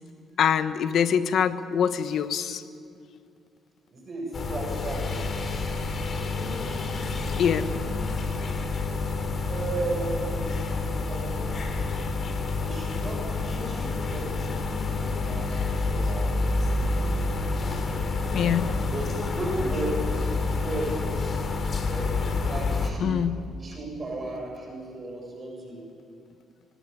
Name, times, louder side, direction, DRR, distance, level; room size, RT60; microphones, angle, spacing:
voice 1, 0.4-2.6 7.4-7.7 18.3-18.7 23.0-23.4, left 8 dB, 70° left, 11 dB, 1.3 m, -24 dB
voice 2, 3.9-5.6 9.5-10.6 11.0-11.9 12.6-14.4 15.2-16.6 17.6-21.5 21.9-23.3 23.6-25.9, right 2 dB, 35° right, 0 dB, 7.0 m, -35 dB
sound 1, 4.3-22.9, left 3 dB, 45° left, 3.1 m, -28 dB
24.5 x 18.0 x 9.9 m, 2.4 s
cardioid pair, 90°, 0 cm